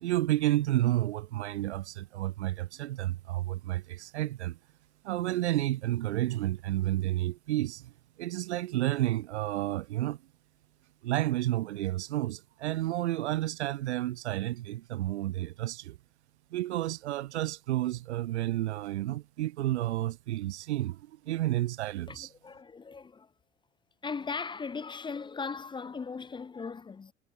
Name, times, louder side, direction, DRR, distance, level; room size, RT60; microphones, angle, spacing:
voice 1, 0.0-4.6 5.0-10.2 11.0-16.0 16.5-22.3, right 15 dB, 65° right, 0.5 m, -31 dB
voice 2, 22.1-23.3 24.0-27.1, left 5 dB, 15° left, 0.8 m, -38 dB
figure-of-eight pair, 75°, 36 cm